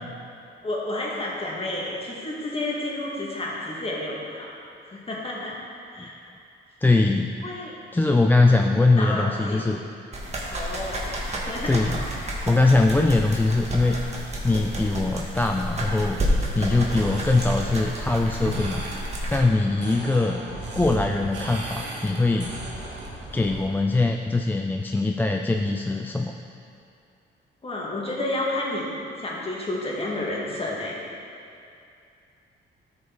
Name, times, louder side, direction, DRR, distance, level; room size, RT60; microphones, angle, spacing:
voice 1, 0.6-4.5 4.8-5.6 5.9-6.2 7.4-7.8 8.4-8.6 9.0-9.7 10.5-11.0 11.5-11.8 27.6-28.9 29.2-31.0, left 1 dB, 30° left, -4 dB, 2.0 m, -30 dB
voice 2, 6.8-7.3 7.9-9.8 11.7-12.0 12.5-14.0 14.4-16.2 16.5-18.8 19.3-20.4 20.8-22.5 23.3-26.3, left 2 dB, 10° left, 3 dB, 0.3 m, -22 dB
sound 1, 10.1-19.4, equal, 35° right, 1.8 m, -30 dB
sound 2, 16.9-23.7, right 2 dB, 60° right, 1.8 m, -36 dB
13.0 x 5.2 x 4.0 m, 2.5 s
cardioid pair, 90°, 20 cm